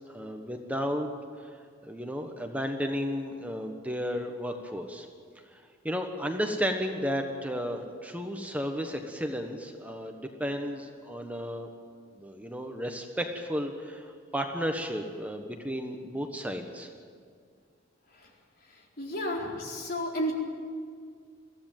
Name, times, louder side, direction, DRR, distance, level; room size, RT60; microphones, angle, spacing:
voice 1, 0.1-1.1 1.4-1.5 1.8-5.1 5.5-11.7 12.2-16.9, equal, 10° right, 4 dB, 1.3 m, -33 dB
voice 2, 19.0-20.4, equal, 50° left, -1 dB, 4.4 m, -31 dB
23.0 x 16.0 x 9.2 m, 2.1 s
head